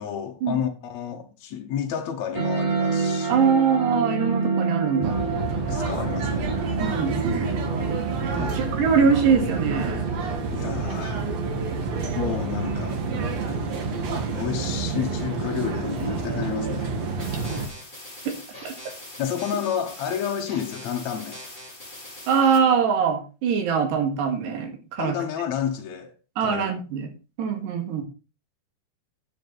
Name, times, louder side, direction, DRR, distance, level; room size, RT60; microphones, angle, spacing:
voice 1, 0.0-3.5 5.5-6.6 8.3-8.6 10.5-11.3 12.1-13.0 13.4-16.9 19.2-21.4 25.0-26.1 26.4-26.7, left 9 dB, 75° left, 1.6 m, -31 dB
sound 1, 2.3-13.3, right 4 dB, 20° right, 3.8 m, -30 dB
voice 2, 3.3-5.1 6.8-7.5 8.2-10.0 18.3-18.4 18.6-18.7 22.3-25.2 26.4-27.1 27.4-28.0, right 6 dB, 85° right, 4.0 m, -23 dB
sound 2, 5.0-17.7, right 4 dB, 55° right, 2.1 m, -28 dB
sound 3, 17.2-22.6, left 1 dB, 15° left, 5.4 m, -41 dB
10.0 x 8.7 x 4.0 m
omnidirectional pair, 4.8 m